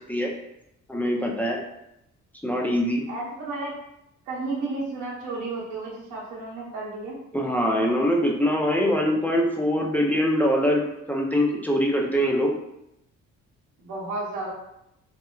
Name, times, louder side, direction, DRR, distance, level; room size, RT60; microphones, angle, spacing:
voice 1, 0.9-1.6 2.4-3.0 7.3-10.8 11.1-12.5, equal, 5° left, -2 dB, 0.4 m, -23 dB
voice 2, 3.1-3.7 4.3-7.2 13.8-14.5, right 3 dB, 90° right, -5 dB, 0.8 m, -32 dB
3.0 x 2.1 x 2.3 m, 0.83 s
cardioid pair, 90°, 30 cm